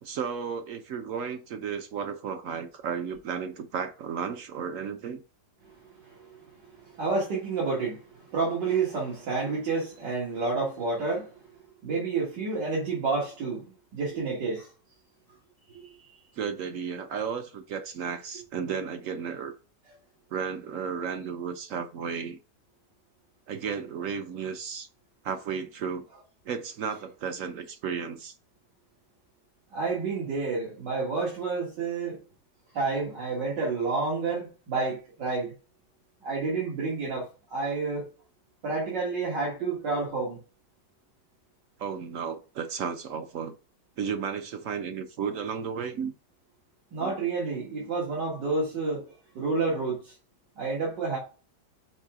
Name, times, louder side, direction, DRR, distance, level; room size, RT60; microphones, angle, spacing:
voice 1, 0.0-5.2 16.4-19.5 20.3-22.4 23.5-24.9 25.2-26.0 26.5-28.3 41.8-43.5 44.0-46.1 47.0-47.2, right 6 dB, 65° right, 0.8 m, -33 dB
voice 2, 6.9-11.3 11.8-13.7 13.9-14.7 15.7-16.1 29.7-32.2 32.7-35.5 36.2-38.1 38.6-40.4 46.9-50.1 50.6-51.2, right 4 dB, 90° right, 2.4 m, -29 dB
5.6 x 4.8 x 3.5 m
omnidirectional pair, 1.8 m